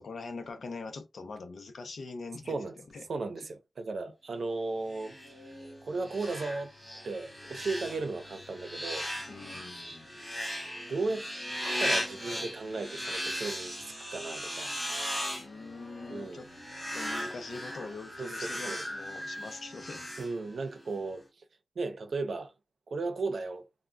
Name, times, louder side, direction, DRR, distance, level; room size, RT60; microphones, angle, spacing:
voice 1, 0.0-2.6 2.9-3.1 9.3-10.1 15.4-16.5 16.9-20.1, left 4 dB, 75° left, 0.6 m, -43 dB
voice 2, 3.1-6.7 7.0-9.1 10.9-11.3 11.8-14.8 16.1-16.4 18.2-18.9 20.2-21.4 21.8-22.5 22.9-23.7, right 3 dB, 65° right, 0.6 m, -35 dB
sound 1, 4.9-20.8, equal, ahead, 1.4 m, -38 dB
3.6 x 2.1 x 2.2 m
wide cardioid pair, 145°, 0 cm